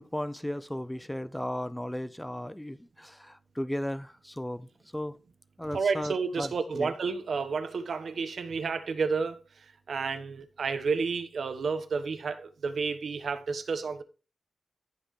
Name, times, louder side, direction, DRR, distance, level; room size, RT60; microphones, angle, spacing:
voice 1, 0.0-5.2 5.6-6.9, left 1 dB, 5° left, 0.6 m, -36 dB
voice 2, 5.7-14.0, right 5 dB, 75° right, 1.2 m, -31 dB
15.0 x 5.7 x 3.2 m
wide cardioid pair, 140°, 0 cm